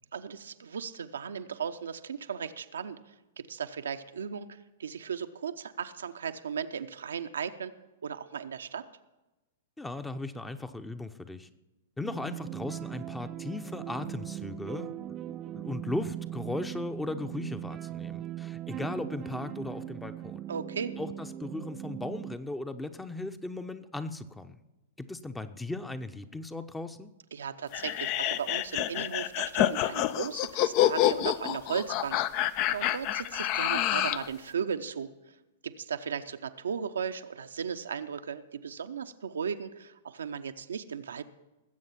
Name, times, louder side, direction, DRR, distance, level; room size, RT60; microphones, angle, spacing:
voice 1, 0.1-3.0 3.4-7.7 8.0-8.8 20.5-20.9 27.3-35.1 35.6-41.2, right 7 dB, 70° right, 8 dB, 0.7 m, -36 dB
voice 2, 9.8-11.5 12.0-20.4 21.0-24.6 25.0-27.1, left 2 dB, 10° left, 10 dB, 0.8 m, -37 dB
sound 1, 12.0-22.4, right 13 dB, 30° right, 0.4 m, -39 dB
sound 2, 27.7-34.3, left 13 dB, 40° left, 0.5 m, -28 dB
20.0 x 8.0 x 5.8 m, 1.0 s
figure-of-eight pair, 105°, 0 cm